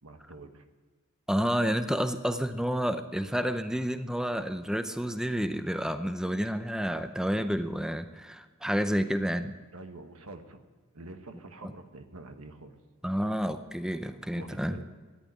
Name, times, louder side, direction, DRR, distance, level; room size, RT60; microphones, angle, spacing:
voice 1, 0.0-0.6 9.7-10.6 10.9-12.8 14.4-14.8, right 2 dB, 90° right, 7 dB, 1.4 m, -46 dB
voice 2, 1.3-9.6 11.6-11.7 13.0-14.8, equal, 5° right, 9 dB, 0.5 m, -30 dB
13.5 x 10.5 x 9.2 m, 1.4 s
head